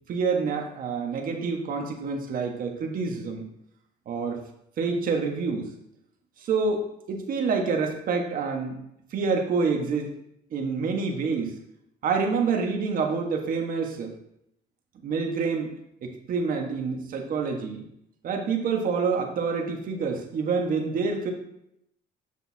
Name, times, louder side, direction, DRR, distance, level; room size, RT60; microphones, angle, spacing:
voice 1, 0.1-3.5 4.1-4.4 4.8-5.7 6.4-8.8 9.1-10.1 10.5-11.6 12.0-14.2 15.0-15.7 16.0-17.8 18.2-21.3, right 5 dB, 55° right, 3 dB, 1.4 m, -27 dB
8.5 x 6.5 x 2.8 m, 0.77 s
cardioid pair, 110°, 17 cm